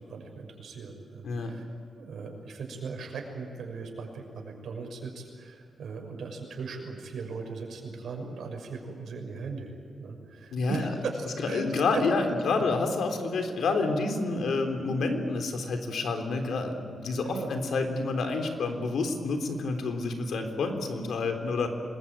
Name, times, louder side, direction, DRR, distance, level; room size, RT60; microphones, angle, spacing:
voice 1, 0.0-1.6 2.0-11.6 11.9-12.0 17.2-17.5, right 4 dB, 80° right, 2 dB, 6.1 m, -38 dB
voice 2, 10.5-10.9 11.5-21.7, left 3 dB, 90° left, 6 dB, 3.5 m, -28 dB
27.0 x 21.0 x 8.8 m, 2.4 s
wide cardioid pair, 175°, 0 cm